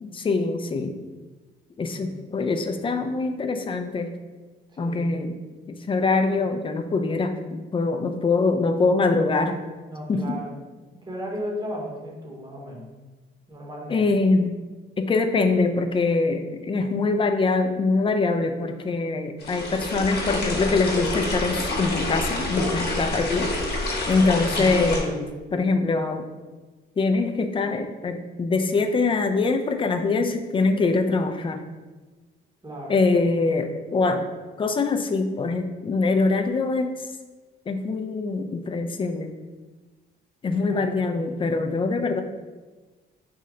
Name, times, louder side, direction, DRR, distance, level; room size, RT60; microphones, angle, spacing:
voice 1, 0.0-1.0 1.8-4.1 4.8-5.4 5.7-9.6 10.1-10.4 13.9-14.5 15.0-23.5 24.1-26.3 27.0-31.7 32.9-34.3 34.6-37.1 37.7-39.3 40.4-42.2, left 3 dB, 25° left, 7 dB, 0.4 m, -23 dB
voice 2, 1.9-2.4 4.7-5.2 9.9-10.5 11.0-12.9 13.5-14.0 24.4-25.2 32.6-33.0 40.6-41.5, equal, 20° right, -2 dB, 1.0 m, -36 dB
sound 1, 19.4-25.0, left 2 dB, 55° left, 0.9 m, -27 dB
3.2 x 2.8 x 3.7 m, 1.3 s
cardioid pair, 90°, 20 cm